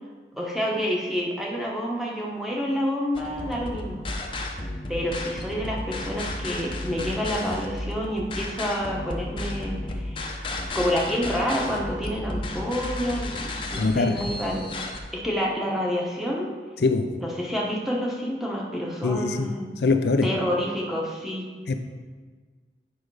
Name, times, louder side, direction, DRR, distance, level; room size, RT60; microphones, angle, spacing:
voice 1, 0.4-4.0 4.9-10.2 10.7-14.7 15.1-16.6 17.2-19.7 20.2-21.5, equal, ahead, -3 dB, 1.1 m, -28 dB
sound 1, 3.1-15.0, left 1 dB, 30° left, 0.7 m, -33 dB
voice 2, 13.7-14.2 16.8-17.1 19.0-19.5 19.8-20.3 21.7-21.8, left 3 dB, 70° left, 7 dB, 0.5 m, -22 dB
8.5 x 5.2 x 4.7 m, 1.5 s
head